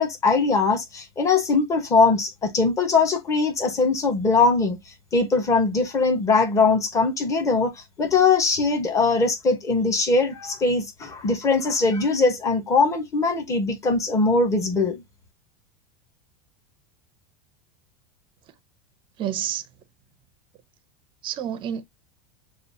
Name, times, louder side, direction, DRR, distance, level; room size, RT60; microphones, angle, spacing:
voice 1, 0.0-4.8 5.1-15.0, left 4 dB, 15° left, 0.8 m, -21 dB
voice 2, 19.2-19.7 21.2-21.8, right 10 dB, 25° right, 0.5 m, -29 dB
6.7 x 2.4 x 2.6 m
supercardioid pair, 160°, 21 cm